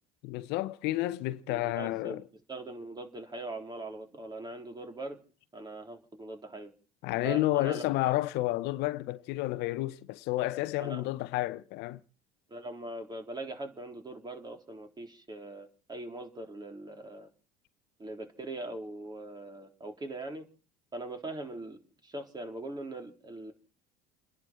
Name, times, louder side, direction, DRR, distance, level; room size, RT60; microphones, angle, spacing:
voice 1, 0.2-2.2 7.0-12.0, left 17 dB, 65° left, 0.9 m, -31 dB
voice 2, 1.5-2.2 2.5-5.2 5.5-6.7 7.2-7.8 10.8-11.0 12.5-17.3 18.0-20.5 20.9-23.5, right 2 dB, 20° right, 3.7 m, -41 dB
29.5 x 11.0 x 4.4 m
hypercardioid pair, 75°, 19 cm